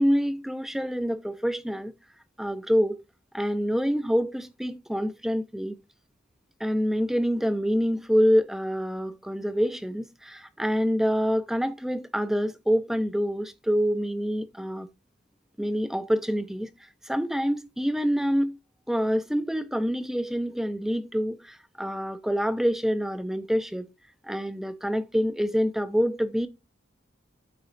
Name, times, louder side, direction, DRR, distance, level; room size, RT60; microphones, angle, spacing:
voice 1, 0.0-1.9 2.4-3.0 3.3-5.8 6.6-14.9 15.6-16.7 17.0-18.6 18.9-23.9 24.2-26.5, equal, ahead, 0.4 m, -26 dB
12.0 x 4.0 x 2.5 m
head